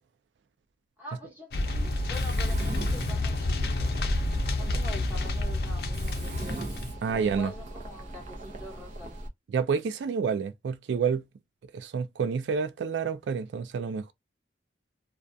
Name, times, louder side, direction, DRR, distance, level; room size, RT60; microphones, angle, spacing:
voice 1, 1.0-3.9 4.6-6.7 7.1-9.2, left 1 dB, 10° right, 1.0 m, -44 dB
sound 1, 1.5-7.0, left 2 dB, 60° left, 0.5 m, -29 dB
Mechanisms, 1.7-9.3, right 2 dB, 45° right, 0.7 m, -40 dB
voice 2, 7.0-7.5 9.5-11.2 11.7-14.1, right 6 dB, 90° right, 0.3 m, -29 dB
2.3 x 2.3 x 2.5 m
head